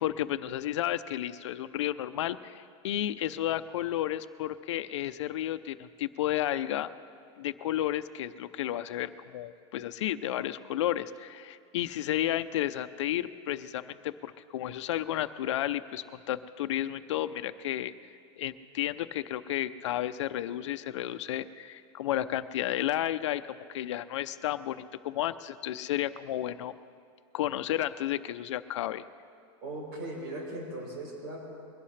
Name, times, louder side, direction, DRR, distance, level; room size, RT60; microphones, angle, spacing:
voice 1, 0.0-6.9 7.4-17.9 18.4-26.7 27.3-29.0, left 12 dB, 75° left, 11 dB, 0.6 m, -32 dB
voice 2, 29.6-31.4, right 1 dB, 40° right, -2 dB, 5.2 m, -38 dB
22.5 x 17.0 x 3.3 m, 2.4 s
supercardioid pair, 180°, 15 cm